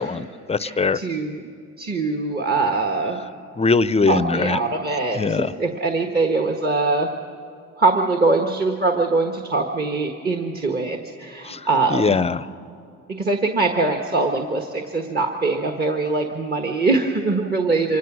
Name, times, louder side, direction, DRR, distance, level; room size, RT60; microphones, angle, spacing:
voice 1, 0.0-1.0 3.6-4.6 5.1-5.5 11.4-12.5, left 4 dB, 20° left, 15 dB, 0.6 m, -21 dB
voice 2, 0.6-1.4 1.8-3.2 4.1-7.1 7.8-12.2 13.2-18.0, right 3 dB, 30° right, 2 dB, 1.5 m, -22 dB
24.5 x 18.5 x 6.2 m, 2.5 s
cardioid pair, 90°, 30 cm